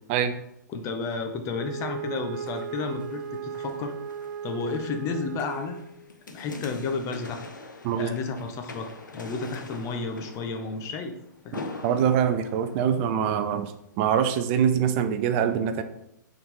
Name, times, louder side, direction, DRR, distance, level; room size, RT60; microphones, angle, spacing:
voice 1, 0.7-3.9 4.4-5.8 6.3-7.4 7.9-11.2 11.4-11.7, left 4 dB, 30° left, 5 dB, 0.9 m, -32 dB
Wind instrument woodwind instrument, 1.5-6.1, right 7 dB, 60° right, 0.9 m, -36 dB
sound 1, 2.3-13.6 14.1-14.2, left 2 dB, 85° left, 0.9 m, -44 dB
voice 2, 11.8-13.7 14.0-15.8, right 8 dB, 40° right, 9 dB, 0.5 m, -24 dB
6.8 x 4.0 x 3.6 m, 0.78 s
hypercardioid pair, 115°, 10 cm